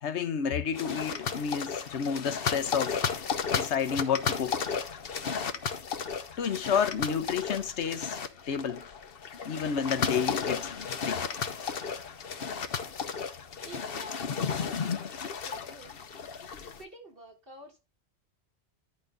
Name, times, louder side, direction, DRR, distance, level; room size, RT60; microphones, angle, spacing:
voice 1, 0.0-3.1 3.5-4.6 6.4-8.2 8.5-8.8 9.4-11.2, left 7 dB, 85° left, 1.2 m, -30 dB
sound 1, 0.7-16.8, left 6 dB, 60° left, 1.0 m, -34 dB
voice 2, 13.7-14.2 14.5-15.0 15.4-16.0 16.8-17.8, right 1 dB, 55° right, 3.9 m, -48 dB
11.0 x 5.2 x 3.9 m
omnidirectional pair, 1.1 m